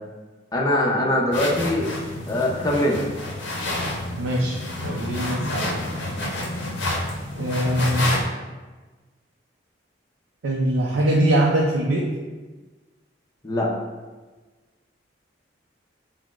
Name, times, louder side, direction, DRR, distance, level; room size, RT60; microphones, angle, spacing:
voice 1, 0.5-1.9 2.3-3.0 13.4-13.7, left 1 dB, 20° left, -2 dB, 0.5 m, -22 dB
sound 1, 1.3-8.2, left 1 dB, 70° left, 0.6 m, -29 dB
voice 2, 4.2-5.8 7.4-8.2 10.4-12.1, right 1 dB, 90° right, -2 dB, 0.4 m, -22 dB
5.7 x 2.0 x 2.4 m, 1.3 s
head